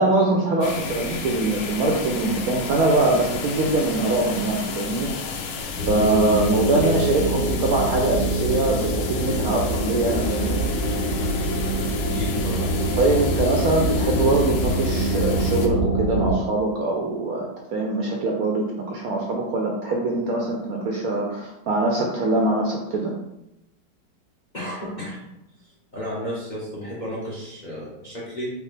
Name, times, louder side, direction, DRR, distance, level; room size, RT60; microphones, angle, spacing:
voice 1, 0.0-5.1 5.9-10.7 13.0-17.5 17.7-23.1, right 2 dB, 70° right, 0 dB, 0.9 m, -23 dB
sound 1, 0.6-15.7, left 5 dB, 75° left, 0.8 m, -32 dB
sound 2, 5.8-16.3, right 1 dB, 20° left, 1.2 m, -24 dB
voice 2, 12.1-13.0 24.5-25.2 25.9-28.5, equal, 40° left, -6 dB, 0.7 m, -33 dB
5.0 x 2.2 x 3.2 m, 0.87 s
omnidirectional pair, 1.9 m